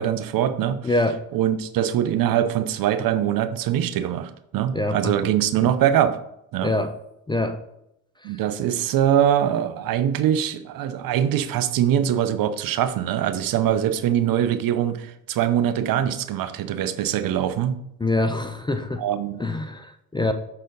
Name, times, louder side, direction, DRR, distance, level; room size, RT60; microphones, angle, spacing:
voice 1, 0.0-0.8 1.3-6.2 6.5-6.7 8.2-17.8 19.0-19.4, right 10 dB, 55° right, 11 dB, 0.7 m, -23 dB
voice 2, 0.8-1.2 4.7-5.1 6.6-6.9 7.3-7.6 8.2-8.3 18.0-19.0 19.4-20.3, left 2 dB, 10° left, 7 dB, 0.4 m, -24 dB
6.5 x 4.2 x 4.0 m, 0.80 s
supercardioid pair, 80°, 40 cm